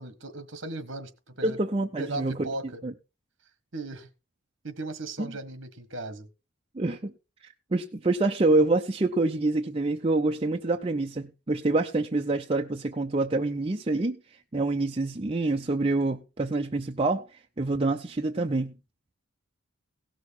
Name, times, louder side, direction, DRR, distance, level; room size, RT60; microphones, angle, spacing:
voice 1, 0.0-1.6 2.0-2.8 3.7-4.1 4.6-6.3, right 2 dB, 55° right, 1.6 m, -37 dB
voice 2, 1.4-2.5 2.8-2.9 5.2-5.3 6.7-7.1 7.4-14.2 14.5-18.7, right 2 dB, 25° right, 0.5 m, -26 dB
17.0 x 6.3 x 4.3 m
head